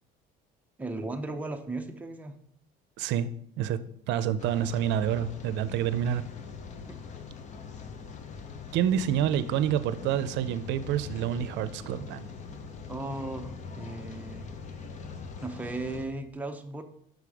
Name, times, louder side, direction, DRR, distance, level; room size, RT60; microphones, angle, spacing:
voice 1, 0.8-2.4 6.9-7.0 12.9-14.5 15.4-16.8, right 2 dB, 10° right, 4 dB, 0.6 m, -36 dB
voice 2, 3.0-3.3 3.6-3.8 4.1-6.3 8.7-12.3, right 10 dB, 70° right, 14 dB, 0.6 m, -28 dB
Rain, 4.4-16.1, left 5 dB, 40° left, 0.8 m, -42 dB
6.2 x 5.2 x 4.8 m, 0.67 s
cardioid pair, 135°, 19 cm